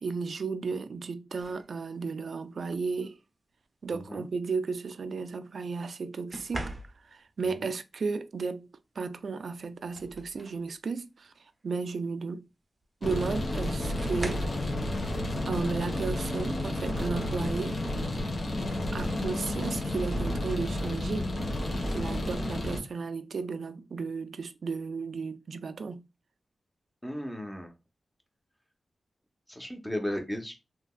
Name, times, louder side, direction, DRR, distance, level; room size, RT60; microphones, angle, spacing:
voice 1, 0.0-3.2 3.8-6.7 7.0-8.7 9.0-11.3 11.6-12.4 13.0-14.5 15.5-17.8 18.9-21.3 21.9-26.0, right 4 dB, 70° right, 0.4 m, -34 dB
sound 1, 1.4-1.7 3.0-3.2 6.3-7.3 9.1-9.2 9.6-10.7 11.2-11.4 12.8-12.9 14.0-14.7 16.4-16.6 17.1-17.4, right 1 dB, 30° right, 0.6 m, -40 dB
voice 2, 3.9-4.3 7.6-7.7 18.4-18.7 27.0-27.7 29.5-30.6, left 1 dB, 10° left, 0.8 m, -36 dB
sound 2, 13.0-22.8, left 1 dB, 50° left, 1.1 m, -31 dB
3.4 x 2.8 x 2.3 m
wide cardioid pair, 90°, 0 cm